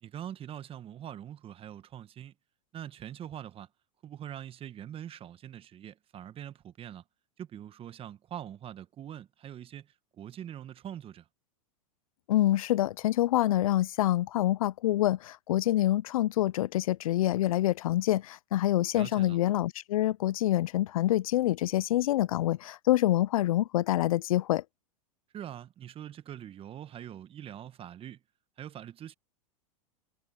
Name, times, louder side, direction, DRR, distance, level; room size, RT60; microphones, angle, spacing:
voice 1, 0.0-2.3 2.7-3.7 4.0-7.0 7.4-11.3 18.9-19.4 25.3-28.2 28.6-29.1, right 10 dB, 30° right, 1.5 m, -43 dB
voice 2, 12.3-24.6, left 14 dB, 70° left, 0.7 m, -26 dB
hypercardioid pair, 100°, 18 cm